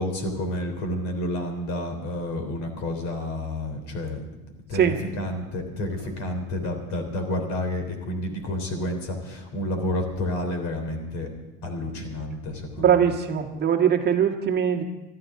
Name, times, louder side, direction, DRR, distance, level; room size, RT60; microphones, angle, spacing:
voice 1, 0.0-4.2 4.7-11.3 11.6-12.9, left 1 dB, 55° left, 5 dB, 3.7 m, -30 dB
voice 2, 12.8-14.8, right 8 dB, 30° right, 2 dB, 1.8 m, -21 dB
23.5 x 13.5 x 3.8 m, 1.0 s
cardioid pair, 140°, 35 cm